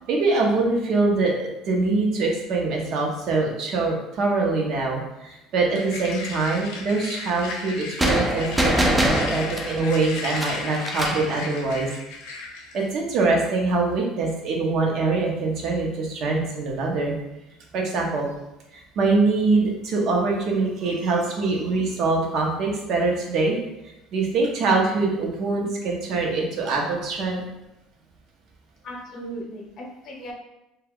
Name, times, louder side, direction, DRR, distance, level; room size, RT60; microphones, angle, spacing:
voice 1, 0.0-11.9 12.7-17.2 17.7-18.3 18.7-23.6 24.1-27.4, right 3 dB, 60° right, 0 dB, 0.7 m, -24 dB
sound 1, 5.8-12.9, left 4 dB, 85° left, 0.4 m, -35 dB
sound 2, 8.0-11.3, right 1 dB, 15° right, 0.4 m, -24 dB
voice 2, 28.8-30.3, equal, 50° left, 0 dB, 0.7 m, -37 dB
2.2 x 2.2 x 3.4 m, 0.90 s
supercardioid pair, 110°, 0 cm